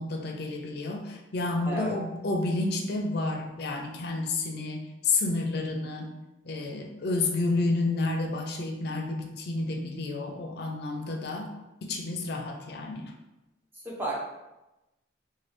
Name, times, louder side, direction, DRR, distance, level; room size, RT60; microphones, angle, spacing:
voice 1, 0.0-6.1 6.4-11.5 11.8-13.1, left 3 dB, 55° left, 3 dB, 0.4 m, -30 dB
voice 2, 1.7-1.9 13.8-14.1, right 3 dB, 10° right, -4 dB, 0.6 m, -32 dB
3.2 x 2.2 x 3.2 m, 1.0 s
head